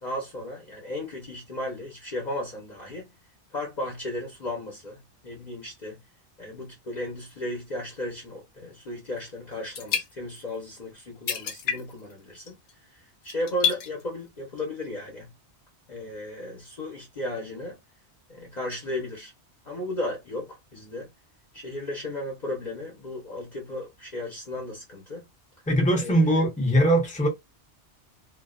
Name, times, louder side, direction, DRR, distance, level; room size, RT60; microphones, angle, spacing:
voice 1, 0.0-3.1 3.5-6.0 6.4-12.6 13.2-15.3 15.9-17.8 18.3-19.3 19.6-21.1 21.5-25.2 26.0-26.4, left 1 dB, 45° left, 0.9 m, -35 dB
sound 1, 9.2-9.3 9.5-10.5 10.9-11.0 11.3-12.1 12.4-12.7 13.2-14.0 14.6-14.7, left 8 dB, 75° left, 1.0 m, -29 dB
voice 2, 25.7-27.3, right 1 dB, 10° left, 0.6 m, -21 dB
2.4 x 2.2 x 2.3 m
omnidirectional pair, 1.2 m